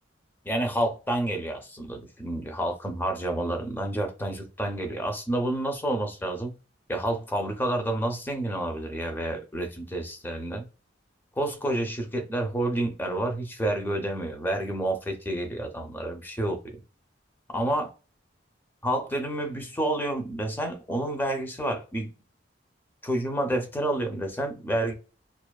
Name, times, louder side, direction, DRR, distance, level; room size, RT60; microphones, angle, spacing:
voice 1, 0.4-6.5 6.9-10.6 11.4-16.8 17.5-17.9 18.8-22.1 23.0-24.9, right 1 dB, 10° left, 0.5 m, -29 dB
2.4 x 2.3 x 2.2 m
head